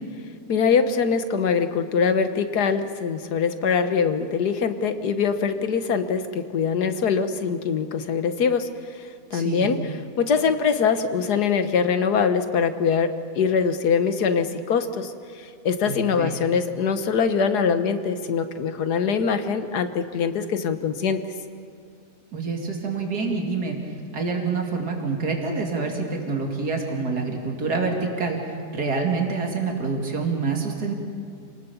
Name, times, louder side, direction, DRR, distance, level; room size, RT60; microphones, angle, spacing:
voice 1, 0.5-8.7 9.3-9.8 10.2-15.1 15.7-21.2, left 6 dB, 90° left, 9 dB, 1.8 m, -23 dB
voice 2, 9.3-9.7 15.9-16.3 22.3-23.8 24.1-28.4 28.7-30.9, right 4 dB, 80° right, 1 dB, 3.0 m, -26 dB
28.5 x 19.0 x 7.1 m, 2.3 s
omnidirectional pair, 1.7 m